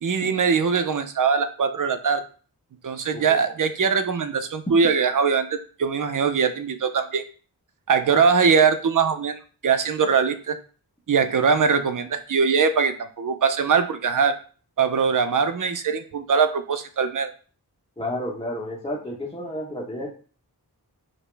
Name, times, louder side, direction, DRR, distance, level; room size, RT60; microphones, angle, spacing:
voice 1, 0.0-2.2 2.8-7.2 7.9-10.6 11.1-14.3 14.8-17.3, right 6 dB, 55° right, 9 dB, 0.5 m, -22 dB
voice 2, 18.0-20.1, left 1 dB, 15° left, -5 dB, 0.8 m, -31 dB
5.0 x 2.0 x 3.2 m, 0.39 s
wide cardioid pair, 70°, 39 cm